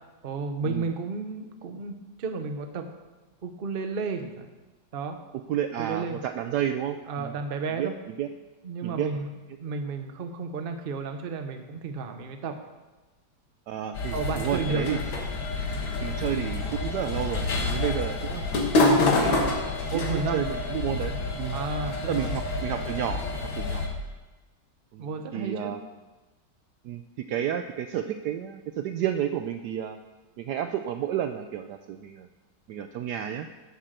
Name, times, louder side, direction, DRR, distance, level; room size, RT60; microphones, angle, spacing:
voice 1, 0.2-2.9 3.4-4.5 4.9-5.2 5.8-6.2 7.1-7.9 8.6-9.3 9.6-12.6 14.1-15.0 19.9-20.4 21.5-22.4 25.0-25.7, right 4 dB, 45° right, 6 dB, 0.7 m, -32 dB
voice 2, 5.5-7.3 7.8-7.9 8.2-8.3 8.8-9.1 13.7-15.0 16.0-18.4 19.1-21.6 22.1-23.9 24.9-25.8 26.8-27.0 27.3-30.0 30.4-32.3 32.7-33.5, right 10 dB, 75° right, 8 dB, 1.0 m, -31 dB
sound 1, 13.9-23.9, left 2 dB, 80° left, 2.2 m, -27 dB
8.8 x 7.5 x 6.6 m, 1.2 s
omnidirectional pair, 2.1 m